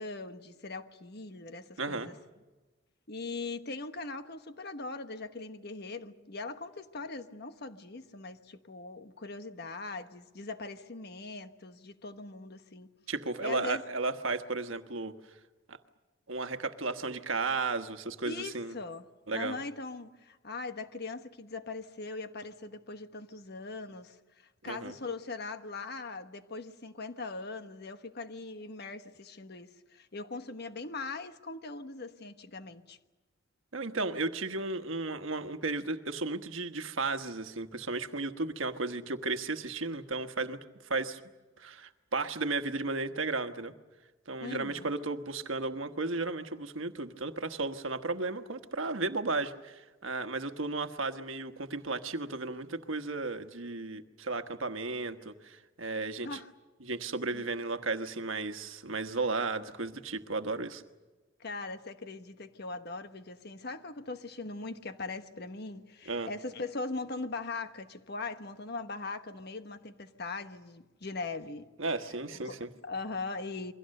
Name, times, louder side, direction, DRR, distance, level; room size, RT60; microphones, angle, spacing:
voice 1, 0.0-2.1 3.1-12.9 13.4-13.8 18.2-24.2 24.6-33.0 44.4-44.9 56.0-56.5 57.3-57.4 61.4-71.7 72.4-72.6 72.8-73.7, left 3 dB, 55° left, 1.3 m, -40 dB
voice 2, 1.8-2.1 13.1-15.2 15.7-15.8 16.3-18.8 19.3-19.6 24.6-25.0 33.7-40.6 40.9-41.2 41.6-43.7 44.3-56.4 56.8-60.8 66.1-66.3 71.8-72.7, right 3 dB, 75° right, 1.3 m, -34 dB
28.5 x 23.5 x 6.6 m
head